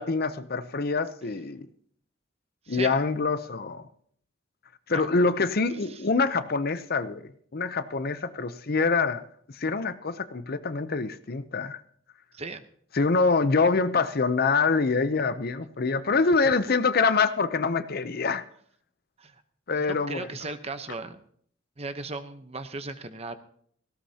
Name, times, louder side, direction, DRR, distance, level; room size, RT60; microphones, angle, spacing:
voice 1, 0.0-1.7 2.7-3.8 4.9-9.2 9.6-11.8 12.9-18.4 19.7-20.3, left 4 dB, 50° left, 12 dB, 0.6 m, -25 dB
voice 2, 5.7-6.0 12.3-12.6 16.4-16.5 19.2-19.4 19.8-21.2 21.8-23.3, right 3 dB, 30° right, 10 dB, 0.9 m, -37 dB
18.0 x 16.5 x 2.8 m, 0.62 s
head